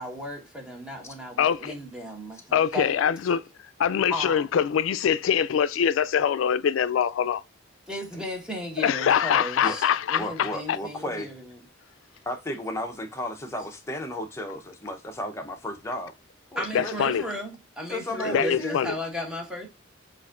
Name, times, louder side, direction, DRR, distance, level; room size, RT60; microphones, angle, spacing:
voice 1, 0.0-2.9 4.1-4.5 7.9-11.5 16.6-19.7, left 1 dB, 5° right, 1.2 m, -35 dB
voice 2, 1.4-1.7 2.5-3.4 3.8-7.4 8.8-10.8 16.7-17.2 18.2-19.0, left 8 dB, 90° left, 0.3 m, -24 dB
voice 3, 10.2-11.3 12.3-16.1 16.5-17.0 17.9-18.8, left 1 dB, 15° left, 0.7 m, -33 dB
7.0 x 2.5 x 2.4 m
head